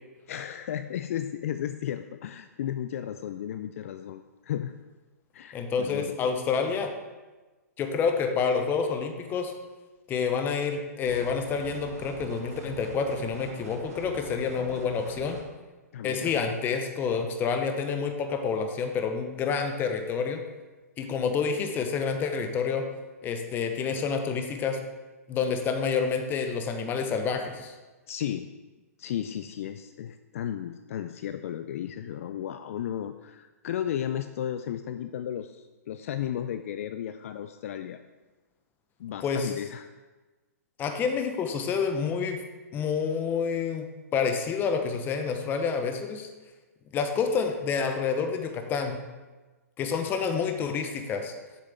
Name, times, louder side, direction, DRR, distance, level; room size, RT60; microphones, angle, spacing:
voice 1, 0.3-4.7 5.3-6.2 15.9-16.4 28.1-28.5 29.0-38.0 39.0-39.9, left 10 dB, 55° left, 9 dB, 0.3 m, -34 dB
voice 2, 5.5-6.9 7.8-9.5 10.1-15.4 16.0-20.4 21.0-22.8 23.2-24.8 25.3-27.7 39.2-39.5 40.8-42.4 42.7-43.8 44.1-46.3 46.9-49.0 49.8-51.3, left 5 dB, 20° left, 6 dB, 0.8 m, -28 dB
sound 1, 11.0-15.4, right 2 dB, 65° right, 1.5 m, -44 dB
7.6 x 6.5 x 3.4 m, 1.2 s
hypercardioid pair, 125°, 9 cm